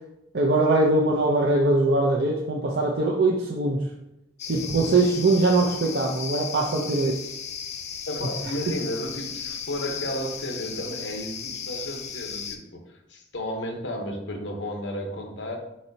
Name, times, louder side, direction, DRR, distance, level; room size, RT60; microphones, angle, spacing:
voice 1, 0.3-3.8 4.5-7.2, right 2 dB, 65° right, -2 dB, 0.5 m, -22 dB
sound 1, 4.4-12.6, left 7 dB, 40° left, 0.4 m, -35 dB
voice 2, 8.1-15.6, left 1 dB, 90° left, 3 dB, 0.8 m, -33 dB
4.3 x 4.2 x 2.7 m, 0.87 s
head